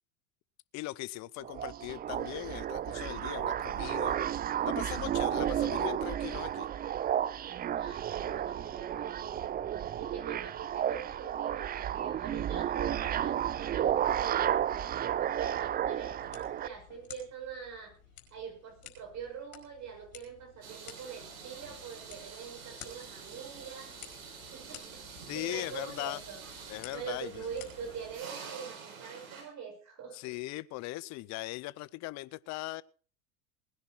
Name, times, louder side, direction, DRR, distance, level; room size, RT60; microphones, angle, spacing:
voice 1, 0.7-6.7 25.3-26.2 26.7-27.4 30.1-32.8, left 19 dB, 40° left, 0.7 m, -39 dB
sound 1, 1.4-16.7, right 10 dB, 20° right, 0.5 m, -32 dB
voice 2, 7.8-9.7 10.0-17.9 18.3-24.0 24.5-26.4 26.9-30.2, right 7 dB, 40° right, 7.0 m, -44 dB
sound 2, 16.2-28.2, left 10 dB, 80° left, 4.8 m, -54 dB
sound 3, 20.6-29.4, right 6 dB, 80° right, 6.5 m, -47 dB
20.0 x 10.5 x 4.5 m
hypercardioid pair, 95°, 42 cm